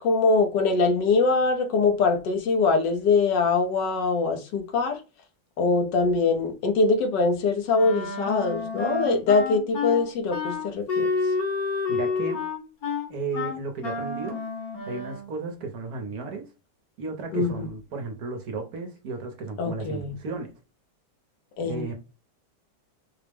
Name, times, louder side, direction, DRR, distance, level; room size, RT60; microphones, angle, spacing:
voice 1, 0.0-5.0 5.6-11.1 17.3-17.7 19.6-20.1 21.6-21.9, left 4 dB, 75° left, 1.4 m, -23 dB
Wind instrument woodwind instrument, 7.7-15.3, left 4 dB, 55° left, 1.5 m, -29 dB
voice 2, 11.9-12.4 13.1-14.5 14.9-16.5 17.0-20.5 21.6-21.9, right 3 dB, 65° right, 1.1 m, -34 dB
4.7 x 2.0 x 3.4 m
omnidirectional pair, 2.0 m